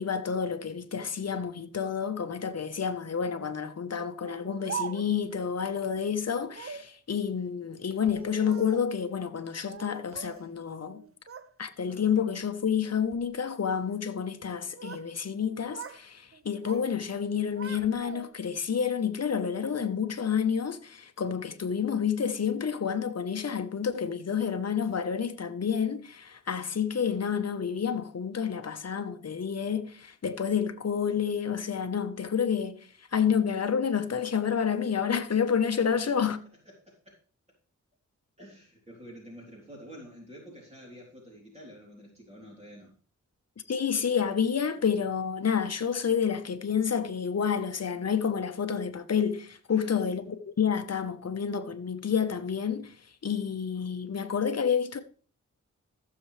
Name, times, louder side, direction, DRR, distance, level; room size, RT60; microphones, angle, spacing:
voice 1, 0.0-11.0 11.6-36.4 43.7-52.9 53.2-55.0, left 7 dB, 55° left, 1.2 m, -29 dB
Speech, 4.2-5.3 6.5-6.9 7.9-9.0 9.7-10.5 10.8-11.5 11.9-12.3 12.9-13.3 14.4-15.1 15.4-16.0 16.3-16.9 17.2-18.5, right 6 dB, 45° right, 0.8 m, -42 dB
voice 2, 36.7-37.1 38.4-42.9 49.7-50.2, equal, 20° right, 3.7 m, -49 dB
15.5 x 7.1 x 3.4 m
cardioid pair, 50°, 31 cm